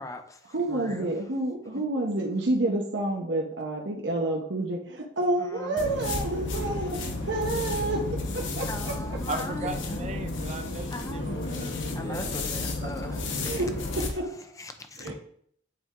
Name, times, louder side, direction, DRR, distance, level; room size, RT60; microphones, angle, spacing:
voice 1, 0.0-1.2 5.4-5.9 8.7-10.1 10.9-13.7 14.1-15.1, left 1 dB, 20° left, 7 dB, 0.6 m, -40 dB
voice 2, 0.5-7.0 7.3-8.0 8.3-9.2 13.4-13.7 13.9-14.3 15.0-15.1, right 2 dB, 70° right, 0 dB, 0.9 m, -29 dB
sound 1, 5.8-14.1, left 2 dB, 80° left, 1.1 m, -32 dB
voice 3, 9.3-13.2 15.0-15.1, right 2 dB, 35° right, 6 dB, 0.5 m, -39 dB
7.8 x 4.2 x 3.7 m, 0.63 s
head